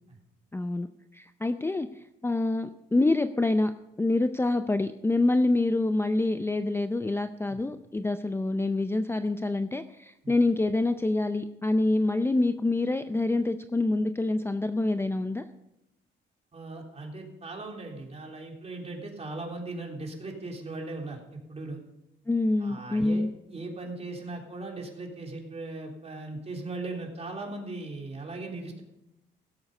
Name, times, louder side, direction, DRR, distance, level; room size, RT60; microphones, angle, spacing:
voice 1, 0.5-0.9 1.1-3.7 4.0-15.4 22.3-23.3, left 2 dB, 10° left, 9 dB, 0.5 m, -26 dB
voice 2, 16.5-21.8 22.6-28.8, right 2 dB, 30° right, 0 dB, 3.5 m, -38 dB
17.0 x 8.0 x 5.5 m, 0.88 s
cardioid pair, 90°, 20 cm